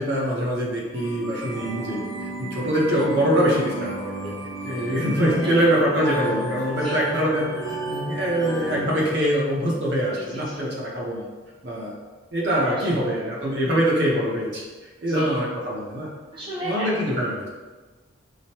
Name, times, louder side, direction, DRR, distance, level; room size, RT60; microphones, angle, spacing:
voice 1, 0.0-4.3 4.6-11.2 11.6-11.9 12.3-14.6 15.0-16.1 16.6-17.5, equal, 55° right, -4 dB, 0.9 m, -24 dB
sound 1, 0.9-9.1, right 1 dB, 15° left, 0.8 m, -33 dB
voice 2, 4.6-5.0 5.4-5.5 6.8-7.0 10.1-10.6 12.6-13.3 15.1-15.4 16.3-16.9, right 1 dB, 25° right, -8 dB, 0.5 m, -36 dB
4.9 x 2.2 x 2.9 m, 1.3 s
head